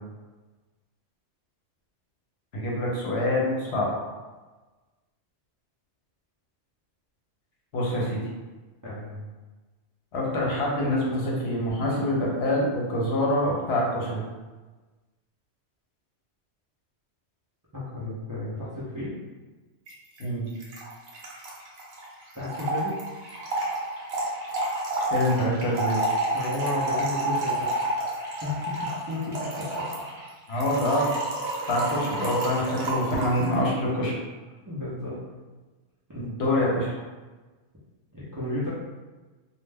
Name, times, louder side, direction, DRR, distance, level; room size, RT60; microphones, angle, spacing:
voice 1, 2.5-3.9 7.7-8.2 10.1-14.2 20.2-20.4 25.1-26.0 30.5-31.1 31.7-34.1 36.2-36.9, left 1 dB, 65° left, -3 dB, 0.9 m, -25 dB
voice 2, 8.8-9.2 17.7-19.1 22.3-23.0 26.3-27.7 28.4-29.8 34.7-35.2 36.1-36.2 38.1-38.7, left 2 dB, 30° right, -10 dB, 0.3 m, -33 dB
Trickle dribble / Fill (with liquid), 19.9-20.0 20.2-20.3 20.5-33.6, right 1 dB, 65° right, 0.9 m, -30 dB
2.3 x 2.1 x 3.3 m, 1.3 s
omnidirectional pair, 1.2 m